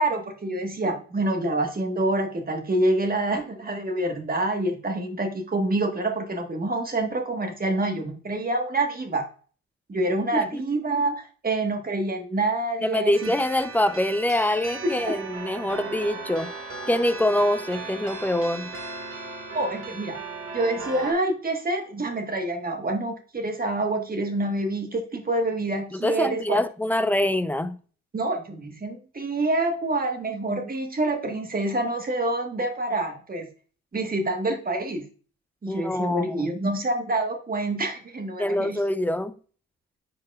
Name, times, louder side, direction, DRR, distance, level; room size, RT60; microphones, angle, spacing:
voice 1, 0.0-9.3 9.9-13.3 14.8-15.1 19.5-20.2 20.5-26.6 28.1-33.5 33.9-35.0 35.6-38.8, right 2 dB, 30° right, 1.5 m, -27 dB
voice 2, 10.3-10.6 12.8-16.5 16.9-18.7 25.9-27.8 35.7-36.5 38.4-39.4, left 1 dB, 5° left, 0.5 m, -25 dB
sound 1, 13.1-21.1, right 4 dB, 45° right, 2.1 m, -37 dB
9.8 x 4.8 x 2.4 m
cardioid pair, 90°, 30 cm